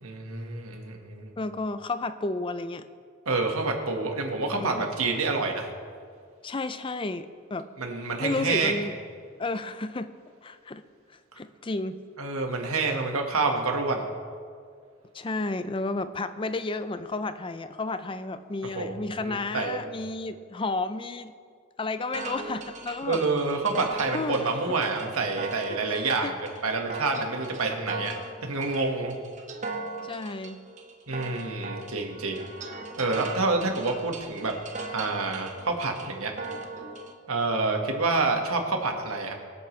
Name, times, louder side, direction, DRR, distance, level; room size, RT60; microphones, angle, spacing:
voice 1, 0.0-1.3 3.3-5.7 7.8-8.8 12.2-14.1 18.6-19.8 23.0-28.1 28.4-29.1 31.1-32.5 33.0-34.5 34.9-36.3 37.3-39.3, right 3 dB, 85° right, 2 dB, 1.7 m, -28 dB
voice 2, 1.4-2.9 4.5-4.9 6.4-7.7 8.2-9.0 9.4-10.1 10.4-10.8 11.4-12.0 15.1-21.3 21.8-23.2 24.1-24.4 25.7-26.3 30.0-30.6, left 2 dB, 25° left, 11 dB, 0.4 m, -32 dB
sound 1, 22.1-37.1, right 3 dB, 35° right, 1.0 m, -39 dB
24.5 x 8.4 x 3.3 m, 2.2 s
head